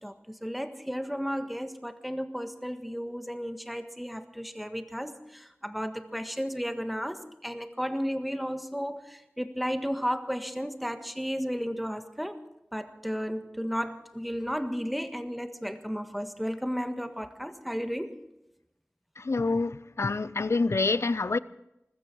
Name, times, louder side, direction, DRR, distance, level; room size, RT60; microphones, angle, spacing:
voice 1, 0.0-12.4 12.7-18.2, equal, ahead, 1.5 m, -33 dB
voice 2, 19.2-21.4, left 3 dB, 90° left, 0.5 m, -27 dB
20.5 x 14.5 x 4.7 m
wide cardioid pair, 45°, 5 cm